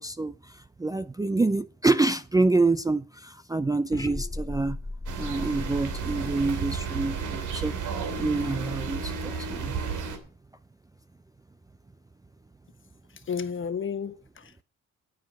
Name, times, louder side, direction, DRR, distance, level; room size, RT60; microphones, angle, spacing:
voice 1, 0.0-4.8 5.2-7.8 8.2-9.7, right 3 dB, 10° right, 0.5 m, -27 dB
sound 1, 3.9-8.0, left 2 dB, 10° left, 1.1 m, -38 dB
sound 2, 5.1-10.2, right 5 dB, 80° right, 2.9 m, -32 dB
voice 2, 13.1-14.6, left 6 dB, 40° left, 1.3 m, -33 dB
9.5 x 9.4 x 6.0 m
cardioid pair, 90°, 30 cm